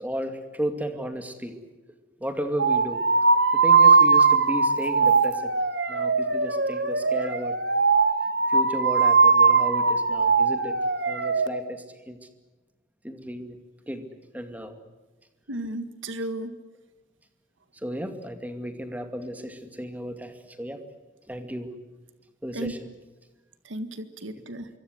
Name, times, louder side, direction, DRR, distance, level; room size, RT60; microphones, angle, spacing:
voice 1, 0.0-1.6 2.2-3.0 3.5-5.5 5.9-7.6 8.5-10.8 11.1-12.3 13.0-13.6 13.9-14.1 14.3-14.8 17.7-20.9 21.2-21.7 22.4-22.9 24.3-24.4, equal, 10° right, 7 dB, 2.3 m, -34 dB
sound 1, 2.6-11.5, right 4 dB, 60° right, 1.8 m, -20 dB
voice 2, 15.5-16.5 22.5-22.7 23.6-24.7, right 1 dB, 90° right, 10 dB, 1.8 m, -34 dB
26.0 x 24.0 x 7.9 m, 1.2 s
head